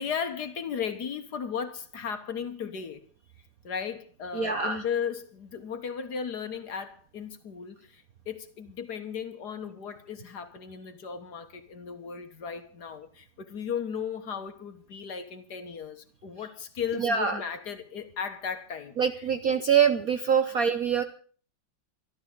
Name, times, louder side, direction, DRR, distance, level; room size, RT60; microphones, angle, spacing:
voice 1, 0.0-3.0 3.6-19.3, left 7 dB, 55° left, 1.6 m, -36 dB
voice 2, 4.3-4.8 17.0-17.4 19.0-21.0, right 7 dB, 60° right, 0.9 m, -24 dB
26.0 x 12.0 x 3.9 m
omnidirectional pair, 2.4 m